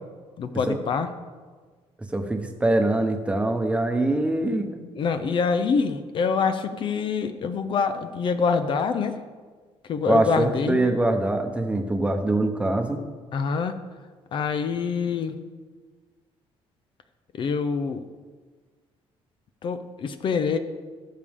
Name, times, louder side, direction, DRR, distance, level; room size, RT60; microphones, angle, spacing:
voice 1, 0.4-1.1 5.0-9.2 9.8-10.8 13.3-13.7 14.3-15.3 17.3-18.0 19.6-20.6, left 5 dB, 50° left, 9 dB, 0.7 m, -25 dB
voice 2, 2.1-4.8 10.1-13.0, right 2 dB, 10° right, 5 dB, 1.0 m, -23 dB
18.0 x 6.7 x 3.7 m, 1.5 s
cardioid pair, 120°, 11 cm